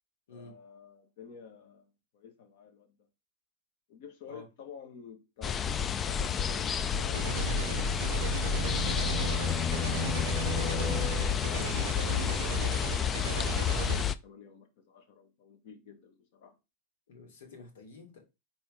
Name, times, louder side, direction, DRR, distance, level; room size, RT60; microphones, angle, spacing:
voice 1, 0.3-2.9 3.9-7.4 10.5-12.2 12.9-16.5, left 7 dB, 60° left, 1.9 m, -48 dB
sound 1, 5.4-14.1, left 7 dB, 20° left, 0.4 m, -30 dB
sound 2, 7.1-14.0, right 10 dB, 90° right, 0.3 m, -38 dB
sound 3, 7.9-11.7, left 6 dB, 5° left, 1.2 m, -37 dB
voice 2, 8.9-9.9 17.1-18.2, left 2 dB, 85° left, 3.1 m, -50 dB
4.4 x 4.3 x 5.2 m
supercardioid pair, 140°, 0 cm